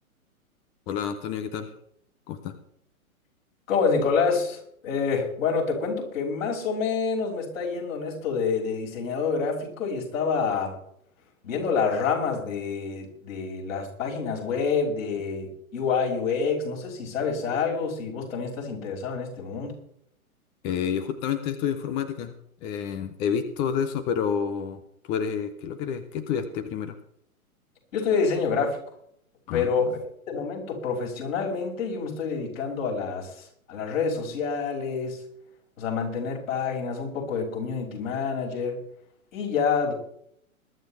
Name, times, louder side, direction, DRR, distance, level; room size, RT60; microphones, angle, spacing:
voice 1, 0.9-1.7 2.3-2.5 20.6-22.3 22.6-27.0 29.5-29.9, left 7 dB, 10° left, 10 dB, 0.4 m, -29 dB
voice 2, 3.7-10.8 11.4-19.8 27.9-28.8 29.5-35.2 35.8-38.8 39.3-39.9, left 5 dB, 65° left, -2 dB, 5.6 m, -27 dB
21.5 x 11.5 x 3.2 m, 0.69 s
figure-of-eight pair, 115°, 43 cm